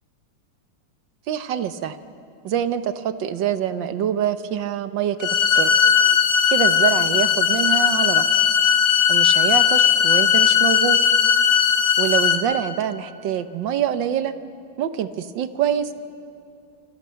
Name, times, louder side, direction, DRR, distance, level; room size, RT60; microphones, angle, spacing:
voice 1, 1.3-2.0 2.4-5.7 6.5-8.2 9.1-11.0 12.0-14.3 14.8-16.0, right 9 dB, 65° right, 11 dB, 1.5 m, -25 dB
sound 1, 5.2-12.4, left 8 dB, 60° left, 2.3 m, -18 dB
28.0 x 25.5 x 5.8 m, 2.7 s
omnidirectional pair, 2.3 m